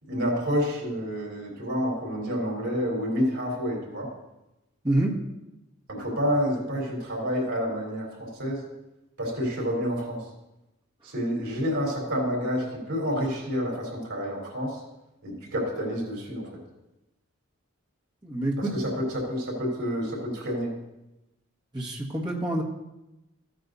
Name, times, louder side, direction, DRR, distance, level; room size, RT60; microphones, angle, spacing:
voice 1, 0.0-4.1 5.9-8.6 9.2-10.3 11.0-14.8 15.2-16.5 18.6-20.7, equal, 85° right, -2 dB, 4.0 m, -29 dB
voice 2, 18.2-18.7 21.7-22.6, right 1 dB, 20° right, -3 dB, 1.6 m, -26 dB
14.5 x 9.2 x 2.7 m, 0.94 s
head